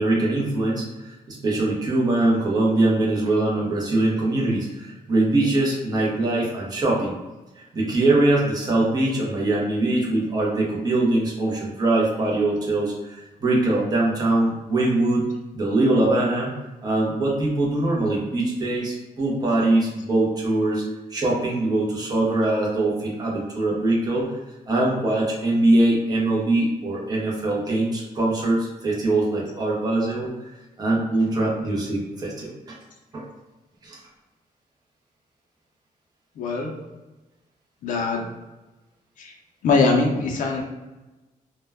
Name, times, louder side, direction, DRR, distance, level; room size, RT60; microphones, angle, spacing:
voice 1, 0.0-7.1 7.6-15.3 15.5-16.5 16.8-20.8 21.1-24.3 24.7-30.3 30.8-32.7 33.1-33.2 33.8-34.0, right 2 dB, 25° right, -3 dB, 0.6 m, -22 dB
voice 2, 36.4-36.7 37.8-38.3 39.2-39.3 39.6-40.6, left 3 dB, 65° left, 0 dB, 0.4 m, -22 dB
2.1 x 2.1 x 3.3 m, 1.1 s
wide cardioid pair, 175°, 15 cm